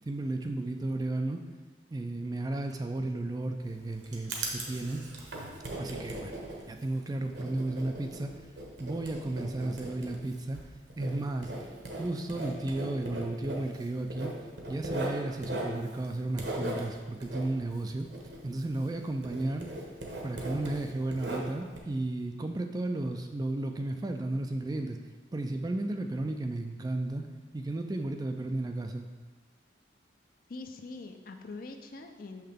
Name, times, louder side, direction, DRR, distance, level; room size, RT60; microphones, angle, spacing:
voice 1, 0.0-1.4 1.9-5.0 5.8-6.3 6.7-8.3 8.8-10.6 11.0-11.5 11.9-14.3 14.7-18.1 18.4-19.7 20.2-25.0 25.3-27.2 27.5-29.1, right 2 dB, 20° right, 5 dB, 0.3 m, -33 dB
Writing, 3.6-19.0 19.2-21.8, right 1 dB, 65° right, 1.1 m, -39 dB
voice 2, 30.5-32.4, left 3 dB, 50° left, 6 dB, 0.5 m, -43 dB
6.4 x 5.7 x 3.5 m, 1.3 s
head